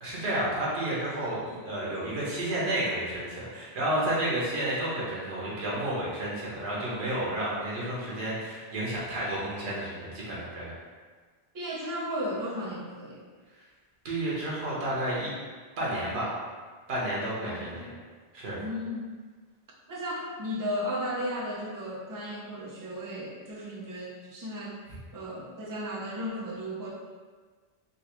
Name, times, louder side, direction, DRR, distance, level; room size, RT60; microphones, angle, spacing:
voice 1, 0.0-10.7 14.0-15.3 15.8-16.3 16.9-17.7 18.3-18.6, right 1 dB, 90° right, -6 dB, 1.2 m, -31 dB
voice 2, 11.5-13.2 17.4-17.8 18.6-19.1 19.9-24.8 25.1-26.9, equal, 25° right, -4 dB, 0.4 m, -35 dB
3.9 x 2.3 x 2.9 m, 1.5 s
omnidirectional pair, 1.0 m